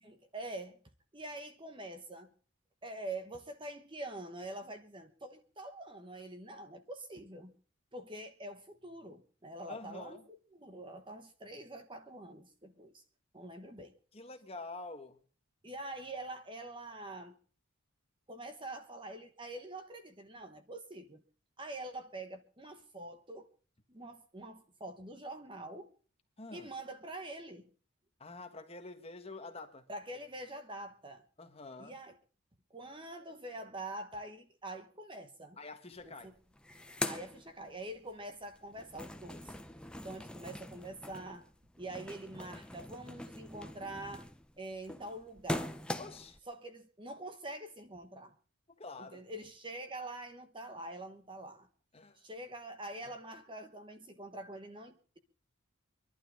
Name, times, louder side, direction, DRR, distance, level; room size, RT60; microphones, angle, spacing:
voice 1, 0.0-0.8 1.1-2.3 2.8-7.5 7.9-13.0 13.3-13.9 15.6-17.4 18.3-21.2 21.6-23.5 23.9-25.9 26.5-27.7 29.9-31.2 31.8-32.2 32.7-35.6 36.0-36.3 37.1-39.5 39.9-41.5 41.8-44.3 44.6-45.8 46.5-48.3 49.0-51.7 52.1-55.2, right 1 dB, 25° right, 1.1 m, -45 dB
voice 2, 9.7-10.2 14.1-15.2 26.4-26.7 28.2-29.9 31.4-32.0 35.6-36.3 46.0-46.4 48.7-49.2 51.9-52.2, left 3 dB, 25° left, 1.4 m, -47 dB
sound 1, 36.0-36.1 36.4-38.1 38.5-46.4, left 1 dB, 5° left, 0.7 m, -42 dB
25.0 x 11.5 x 3.6 m
head